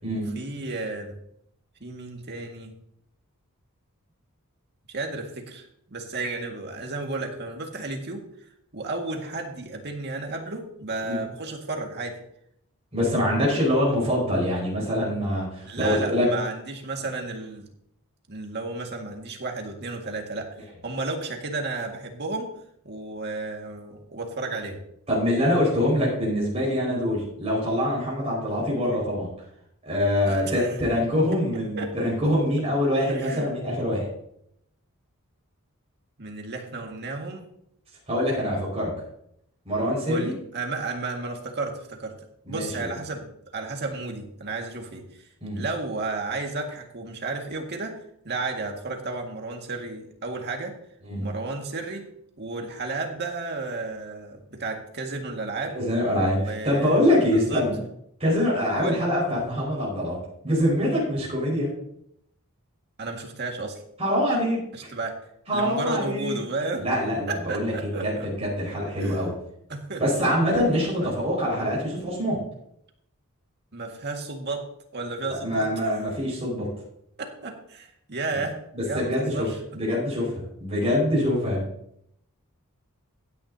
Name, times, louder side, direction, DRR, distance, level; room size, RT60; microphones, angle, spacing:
voice 1, 0.3-1.2 1.8-2.7 4.9-8.2 8.7-12.2 15.6-17.7 18.3-20.5 20.8-22.5 22.8-24.8 30.3-30.8 31.7-32.1 33.1-33.5 36.2-37.5 40.1-42.2 42.5-45.2 45.5-48.0 48.2-50.8 51.2-52.1 52.4-55.8 56.3-57.0 57.3-57.7 58.8-59.0 63.0-63.8 64.7-65.1 65.5-66.9 67.3-68.3 69.0-69.3 69.7-70.0 71.0-71.1 73.7-74.6 74.9-76.0 77.2-79.6, right 3 dB, 50° right, 2 dB, 2.0 m, -33 dB
voice 2, 12.9-16.3 25.1-29.3 29.8-34.1 38.1-38.9 39.7-40.3 42.5-42.9 45.4-45.6 51.0-51.3 55.7-57.8 58.2-60.2 60.4-61.7 64.0-64.6 65.5-66.4 66.8-69.3 70.0-72.4 75.3-76.7 78.7-79.5 79.7-80.3 80.6-81.6, left 1 dB, 30° right, -5 dB, 5.4 m, -24 dB
16.0 x 9.9 x 2.8 m, 0.73 s
head